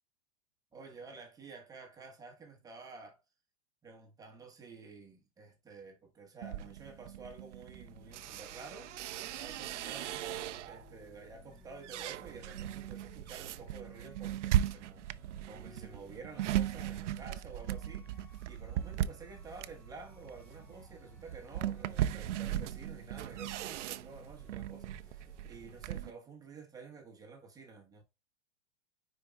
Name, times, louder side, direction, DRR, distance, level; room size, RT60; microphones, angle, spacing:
voice 1, 0.7-3.2 3.8-15.1 15.5-28.0, right 4 dB, 10° right, 1.2 m, -51 dB
sound 1, 6.4-10.9 11.4-26.1, right 12 dB, 75° right, 0.6 m, -38 dB
sound 2, 7.7-25.8, left 2 dB, 5° left, 0.8 m, -59 dB
9.5 x 4.6 x 2.3 m
supercardioid pair, 165°, 36 cm